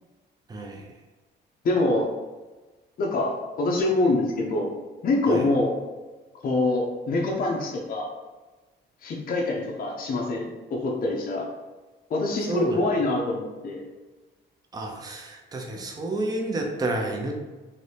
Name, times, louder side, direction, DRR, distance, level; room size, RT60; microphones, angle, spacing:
voice 1, 0.5-0.8 5.3-5.5 12.5-12.9 14.7-17.3, right 2 dB, 20° right, 1 dB, 0.5 m, -30 dB
voice 2, 1.6-2.1 3.0-4.7 5.0-5.8 6.4-8.1 9.0-11.5 12.1-13.8, left 2 dB, 45° left, -1 dB, 0.5 m, -25 dB
2.7 x 2.6 x 3.3 m, 1.2 s
cardioid pair, 90°, 20 cm